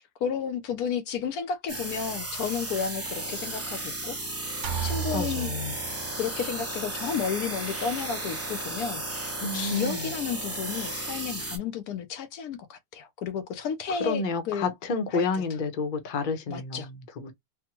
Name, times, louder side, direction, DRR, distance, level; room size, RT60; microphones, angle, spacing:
voice 1, 0.0-4.2 4.8-5.5 6.1-14.7 15.1-15.4 16.5-16.9, left 7 dB, 80° left, 1.1 m, -32 dB
sound 1, 1.7-11.6, right 2 dB, 25° right, 0.3 m, -34 dB
sound 2, 4.6-6.5, right 8 dB, 80° right, 1.1 m, -34 dB
voice 2, 5.1-5.8 9.4-10.1 14.0-17.3, left 4 dB, 40° left, 0.7 m, -30 dB
3.4 x 2.1 x 2.9 m
omnidirectional pair, 1.6 m